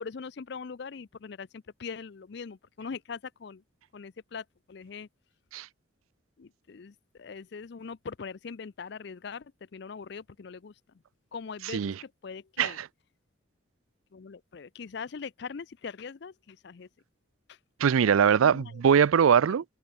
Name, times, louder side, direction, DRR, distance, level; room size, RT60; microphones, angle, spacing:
voice 1, 0.0-3.6 3.9-5.1 6.4-10.7 11.3-12.8 14.1-16.9 17.5-17.6 18.4-18.8 19.5-19.6, left 5 dB, 55° left, 0.4 m, -41 dB
voice 2, 17.8-19.6, right 7 dB, 90° right, 0.4 m, -22 dB
head